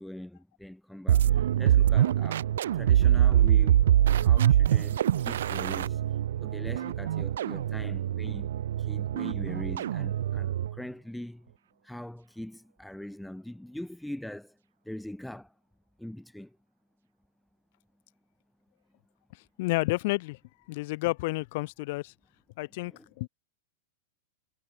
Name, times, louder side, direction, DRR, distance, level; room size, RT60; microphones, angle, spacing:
voice 1, 0.0-2.5 2.7-3.8 4.1-6.0 6.4-8.5 8.8-11.5 11.8-14.6 14.9-15.5 16.0-16.6 22.8-23.1, left 1 dB, ahead, 3.8 m, -42 dB
sound 1, 1.1-10.8, right 11 dB, 80° right, 6.2 m, -24 dB
voice 2, 19.6-20.4 20.7-22.1 22.6-22.9 23.2-23.3, left 22 dB, 40° left, 8.0 m, -30 dB
supercardioid pair, 175°, 0 cm